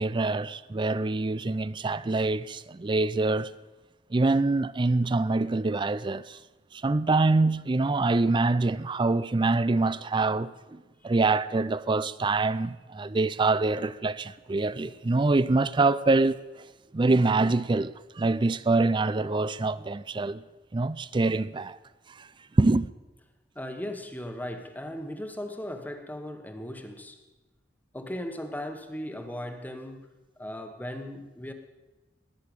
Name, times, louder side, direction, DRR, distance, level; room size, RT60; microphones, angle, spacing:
voice 1, 0.0-3.5 4.1-6.4 6.7-16.4 16.9-20.4 20.7-21.8 22.2-22.3 22.6-22.9, right 3 dB, 25° right, 0.4 m, -25 dB
voice 2, 23.5-27.2 27.9-30.1 30.4-31.5, left 1 dB, 10° left, 1.2 m, -37 dB
20.0 x 6.7 x 8.9 m
head